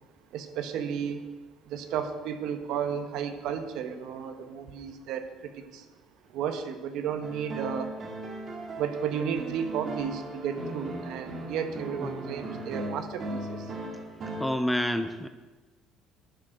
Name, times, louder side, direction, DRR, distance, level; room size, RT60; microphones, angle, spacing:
voice 1, 0.3-1.2 1.7-5.2 6.3-7.9 8.8-13.6, right 7 dB, 65° right, 8 dB, 1.2 m, -33 dB
sound 1, 7.2-14.4, right 2 dB, 35° right, 1.7 m, -37 dB
voice 2, 14.4-15.3, left 1 dB, 5° left, 9 dB, 0.5 m, -27 dB
11.5 x 6.3 x 7.8 m, 1.3 s
cardioid pair, 150°, 0 cm